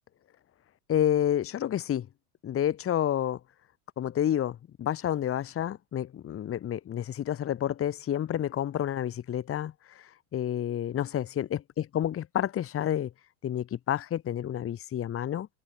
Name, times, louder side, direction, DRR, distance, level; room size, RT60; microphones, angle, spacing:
voice 1, 0.9-2.1 2.4-3.4 4.0-11.6 11.9-13.1 13.4-15.5, left 10 dB, 30° left, 1.7 m, -29 dB
open air
hypercardioid pair, 105°, 46 cm